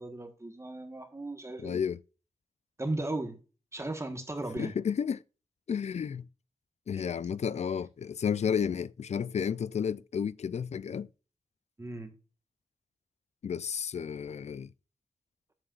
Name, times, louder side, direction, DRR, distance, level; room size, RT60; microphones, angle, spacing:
voice 1, 0.0-1.8 2.8-3.4 3.7-4.8 11.8-12.1, right 2 dB, 25° right, 1.3 m, -36 dB
voice 2, 1.6-2.0 4.6-5.2 5.7-6.3 6.9-11.1 13.4-14.7, left 7 dB, 65° left, 0.4 m, -32 dB
8.4 x 7.6 x 2.4 m
wide cardioid pair, 90°, 12 cm